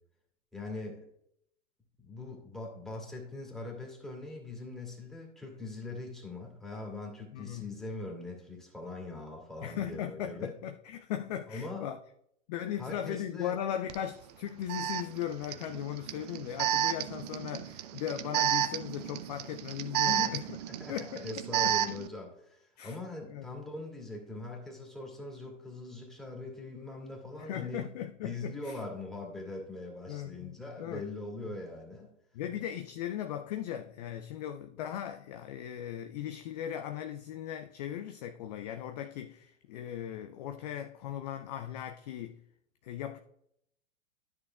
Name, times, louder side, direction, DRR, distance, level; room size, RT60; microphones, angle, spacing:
voice 1, 0.5-1.1 2.0-10.5 11.5-11.9 12.8-13.6 20.0-27.9 28.2-32.1, left 2 dB, ahead, 2.3 m, -42 dB
voice 2, 7.3-7.7 9.6-12.0 12.5-20.5 20.9-21.3 21.6-21.8 22.8-23.0 23.3-23.5 27.4-28.8 30.1-31.0 32.3-42.4 42.8-43.2, left 10 dB, 35° left, 0.4 m, -38 dB
Alarm, 13.9-14.0 14.7-22.1, right 11 dB, 35° right, 0.4 m, -32 dB
13.0 x 6.3 x 2.3 m
figure-of-eight pair, 105°, 37 cm